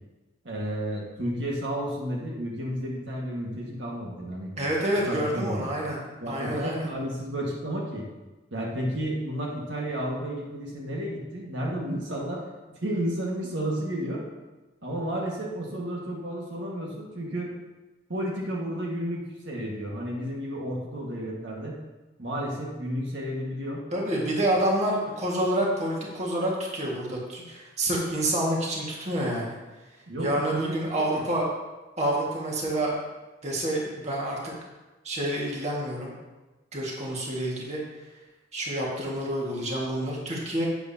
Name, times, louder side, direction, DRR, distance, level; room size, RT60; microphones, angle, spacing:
voice 1, 0.4-4.5 5.1-5.7 6.2-8.1 8.5-12.4 12.8-14.2 14.8-17.5 18.1-21.8 22.2-23.8 30.1-31.2, equal, 70° right, -3 dB, 1.8 m, -32 dB
voice 2, 4.6-6.0 6.3-6.9 23.9-29.6 30.2-31.4 32.0-32.9 33.4-34.5 35.0-36.1 36.7-37.8 38.5-40.7, right 1 dB, 35° right, -3 dB, 1.9 m, -28 dB
11.5 x 8.7 x 2.9 m, 1.1 s
head